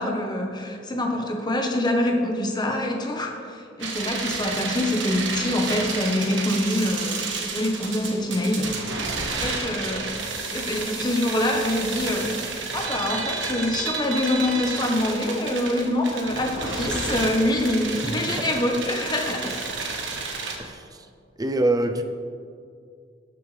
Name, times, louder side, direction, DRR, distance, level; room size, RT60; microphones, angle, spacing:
voice 1, 0.0-8.7 9.4-10.1 10.5-12.5 12.7-19.6, left 1 dB, 20° left, 2 dB, 1.2 m, -25 dB
sound 1, 3.8-20.6, right 4 dB, 70° right, 1.5 m, -31 dB
voice 2, 20.6-21.1 21.4-22.0, right 2 dB, 20° right, 5 dB, 0.6 m, -25 dB
19.5 x 6.8 x 3.4 m, 2.3 s
head